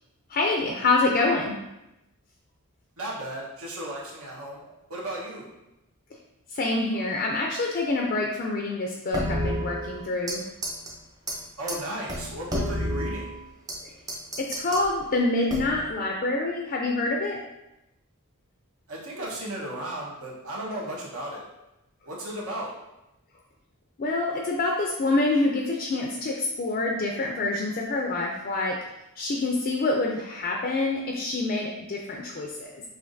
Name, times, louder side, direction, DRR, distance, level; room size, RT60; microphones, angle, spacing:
voice 1, 0.3-1.6 6.5-10.4 13.8-13.9 14.4-17.4 24.0-28.8 29.2-32.8, left 2 dB, 40° left, 1 dB, 0.4 m, -26 dB
voice 2, 3.0-4.6 4.9-5.5 11.6-13.3 18.9-21.5 22.1-22.7, right 1 dB, 70° right, -4 dB, 1.1 m, -35 dB
sound 1, 9.1-10.4 10.6-10.9 11.3-11.4 11.7-11.8 12.1-13.8 14.1-14.8 15.5-15.9, equal, 15° right, 0.5 m, -30 dB
5.5 x 2.6 x 2.6 m, 0.93 s
head